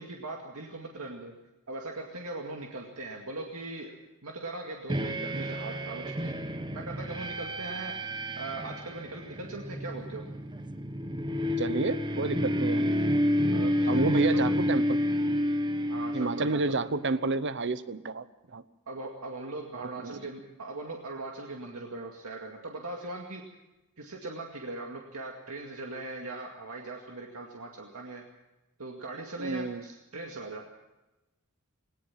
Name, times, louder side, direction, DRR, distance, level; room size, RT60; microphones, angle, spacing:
voice 1, 0.0-1.3 1.7-3.9 4.2-6.3 6.7-7.9 8.4-10.2 13.5-14.5 15.8-16.7 18.9-23.4 24.0-28.2 28.8-30.6, right 2 dB, 90° right, 1 dB, 2.2 m, -40 dB
sound 1, 4.9-17.0, equal, 20° right, 1.1 m, -30 dB
voice 2, 11.6-12.9 13.9-15.1 16.1-18.3 18.5-18.6 19.7-20.1 29.4-29.8, right 3 dB, 55° right, 14 dB, 0.9 m, -30 dB
19.5 x 18.5 x 7.4 m, 1.0 s
head